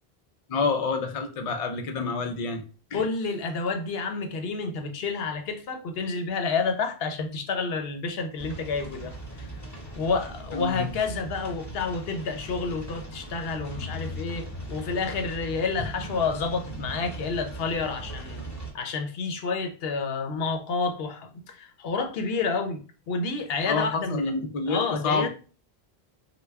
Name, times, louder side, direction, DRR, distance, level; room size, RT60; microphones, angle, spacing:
voice 1, 0.5-2.6 2.9-3.0 10.5-10.9 15.8-15.9 23.7-25.3, left 4 dB, 50° left, 0.4 m, -28 dB
voice 2, 2.9-9.5 9.9-18.4 18.7-24.3 24.7-25.3, left 4 dB, 70° left, 0.8 m, -29 dB
sound 1, 8.4-18.7, right 1 dB, 20° left, 0.9 m, -39 dB
3.2 x 2.2 x 3.4 m
omnidirectional pair, 1.1 m